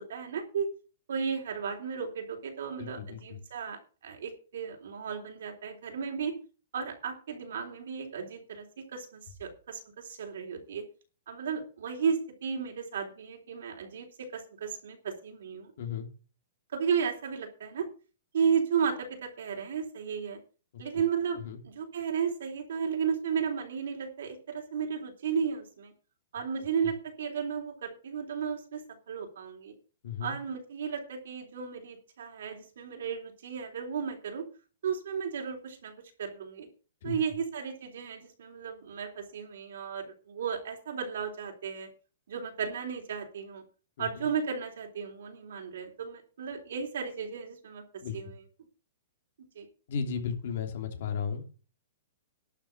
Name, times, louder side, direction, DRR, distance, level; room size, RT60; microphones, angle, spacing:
voice 1, 0.1-0.7 1.1-6.3 6.7-8.6 8.9-10.8 11.3-14.1 14.3-15.7 16.7-17.9 18.3-20.4 20.8-25.9 26.3-29.7 30.2-34.4 34.8-35.9 36.2-36.7 37.0-41.9 42.3-43.6 44.0-47.8 48.1-48.2 49.6-49.7, right 6 dB, 75° right, 2 dB, 3.7 m, -34 dB
voice 2, 2.8-3.4 15.8-16.1 20.7-21.0 21.4-21.6 30.0-30.3 37.0-37.2 44.0-44.3 48.0-48.2 49.9-51.6, left 6 dB, 55° left, 5 dB, 3.0 m, -35 dB
12.0 x 6.2 x 7.9 m, 0.36 s
hypercardioid pair, 170°, 0 cm